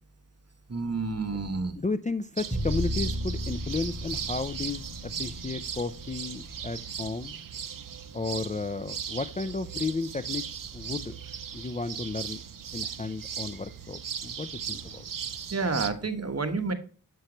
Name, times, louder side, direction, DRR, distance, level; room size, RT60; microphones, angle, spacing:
voice 1, 0.7-1.7 15.5-16.7, right 4 dB, 40° right, 7 dB, 1.1 m, -29 dB
voice 2, 1.8-7.4 8.1-10.4 10.7-11.2 11.5-12.4 12.7-15.1, left 3 dB, 20° left, 12 dB, 0.4 m, -33 dB
sound 1, 2.4-15.9, right 7 dB, 60° right, 0.6 m, -38 dB
sound 2, 2.5-6.6, equal, 15° right, 2.0 m, -34 dB
7.8 x 5.6 x 3.0 m, 0.40 s
wide cardioid pair, 50°, 37 cm